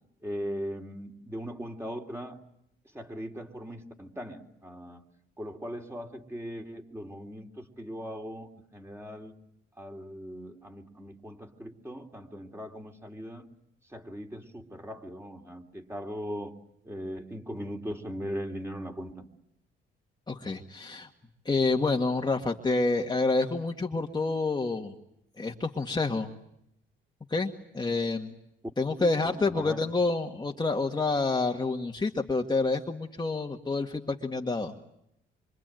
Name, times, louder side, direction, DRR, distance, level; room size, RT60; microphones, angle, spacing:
voice 1, 0.2-2.4 2.9-5.0 5.4-9.3 9.8-13.4 13.9-16.5 16.8-19.3 29.0-29.8, equal, 10° right, 2 dB, 3.5 m, -39 dB
voice 2, 20.3-21.1 21.5-24.9 25.4-26.3 27.3-28.3 28.8-34.7, left 3 dB, 20° left, 2 dB, 1.9 m, -28 dB
26.0 x 25.0 x 9.2 m, 0.78 s
cardioid pair, 90°, 20 cm